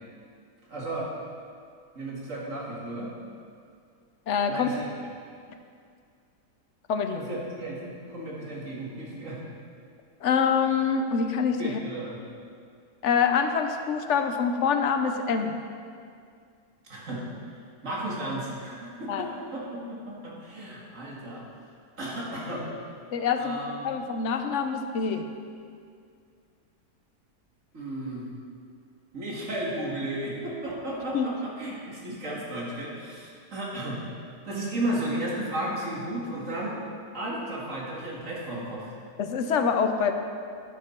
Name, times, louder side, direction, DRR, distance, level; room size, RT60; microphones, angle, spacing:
voice 1, 0.7-1.1 1.9-3.1 4.5-4.9 7.1-9.4 11.6-12.2 16.9-17.3 17.8-21.4 22.0-22.7 23.4-23.9 27.7-28.3 29.1-34.0 34.4-36.8 37.1-38.9, right 1 dB, 50° right, -4 dB, 2.4 m, -34 dB
voice 2, 4.3-4.7 6.9-7.2 10.2-11.8 13.0-15.6 19.1-19.2 23.1-23.6 23.8-25.3 31.1-31.3 39.2-40.1, left 6 dB, 55° left, 6 dB, 0.9 m, -25 dB
10.5 x 9.7 x 4.5 m, 2.3 s
omnidirectional pair, 1.7 m